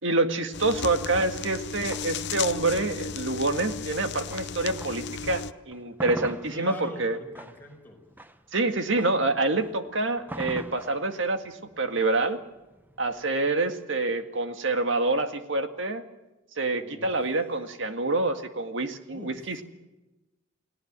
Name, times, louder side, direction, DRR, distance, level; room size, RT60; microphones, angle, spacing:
voice 1, 0.0-7.2 8.5-12.4 13.0-16.0 16.6-19.6, right 2 dB, 70° right, 7 dB, 2.0 m, -27 dB
sound 1, 0.5-5.5, left 6 dB, 60° left, 0.7 m, -35 dB
sound 2, 1.4-5.2 5.6-13.5, right 1 dB, 10° right, 1.0 m, -43 dB
voice 2, 6.5-8.0 16.8-17.1 19.1-19.6, left 1 dB, 10° left, 1 dB, 5.3 m, -43 dB
30.0 x 18.0 x 7.5 m, 1.0 s
head